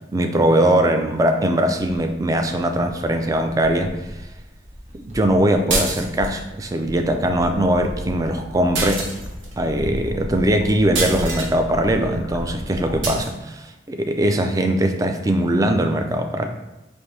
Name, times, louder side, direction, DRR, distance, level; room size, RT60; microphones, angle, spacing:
voice 1, 0.1-3.9 4.9-9.1 9.6-16.5, right 1 dB, 20° right, 5 dB, 0.3 m, -20 dB
sound 1, 2.2-13.4, equal, 35° right, 0.8 m, -39 dB
sound 2, 5.7-6.4 8.7-9.5 10.9-11.5 13.0-13.3, right 3 dB, 90° right, 0.9 m, -25 dB
sound 3, 7.1-13.2, left 1 dB, 85° left, 0.6 m, -35 dB
5.1 x 2.6 x 3.2 m, 1.0 s
head